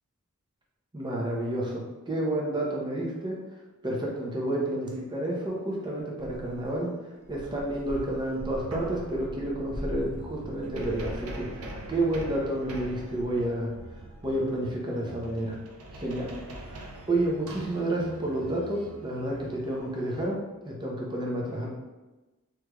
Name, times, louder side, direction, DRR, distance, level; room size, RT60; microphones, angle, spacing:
voice 1, 0.9-3.4 3.8-6.9 7.3-13.7 14.2-15.6 15.9-16.3 16.6-20.4 20.6-21.7, right 1 dB, 20° right, -3 dB, 0.6 m, -30 dB
sound 1, 6.2-6.8 7.2-11.3, equal, ahead, 1.2 m, -40 dB
sound 2, 7.9-8.0 8.4-20.3, right 1 dB, 80° right, 0.5 m, -43 dB
3.2 x 3.0 x 2.3 m, 1.1 s
head